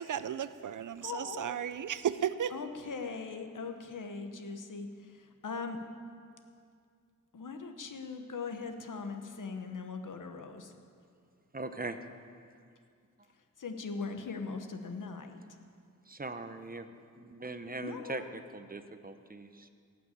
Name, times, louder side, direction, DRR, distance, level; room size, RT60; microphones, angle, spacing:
voice 1, 0.0-2.6, right 9 dB, 70° right, 14 dB, 0.5 m, -34 dB
voice 2, 1.0-1.5 2.5-4.9 5.4-5.8 7.3-10.7 13.6-15.4 17.8-18.3, left 4 dB, 70° left, 6 dB, 1.2 m, -40 dB
voice 3, 11.5-12.0 16.0-19.7, right 2 dB, 30° right, 9 dB, 0.7 m, -41 dB
17.5 x 6.0 x 8.5 m, 2.2 s
wide cardioid pair, 95°, 32 cm